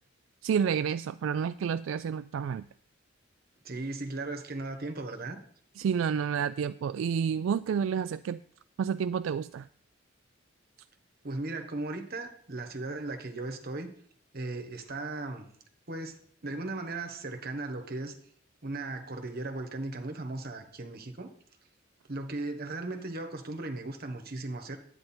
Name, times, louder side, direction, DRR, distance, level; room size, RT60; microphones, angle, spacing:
voice 1, 0.4-2.7 5.8-8.4 8.8-9.7, right 7 dB, 75° right, 13 dB, 0.3 m, -29 dB
voice 2, 3.6-5.4 11.2-13.9 14.3-15.5 15.9-18.2 18.6-21.3 22.1-24.8, right 2 dB, 50° right, 6 dB, 1.2 m, -37 dB
10.5 x 9.1 x 4.3 m, 0.63 s
head